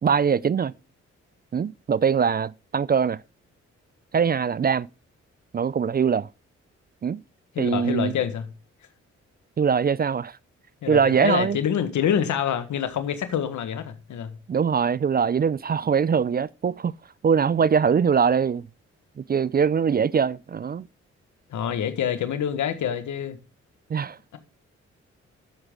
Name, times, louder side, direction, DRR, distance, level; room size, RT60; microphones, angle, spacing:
voice 1, 0.0-0.7 1.5-3.2 4.1-4.9 5.5-6.3 7.0-7.2 7.6-8.2 9.6-10.4 10.9-11.6 14.5-16.9 17.2-18.6 19.2-20.9 23.9-24.2, right 6 dB, 35° right, 0.4 m, -22 dB
voice 2, 7.5-8.5 10.8-14.4 21.5-23.4 24.3-24.4, left 9 dB, 80° left, 1.6 m, -26 dB
12.0 x 8.0 x 3.8 m
supercardioid pair, 50°, 29 cm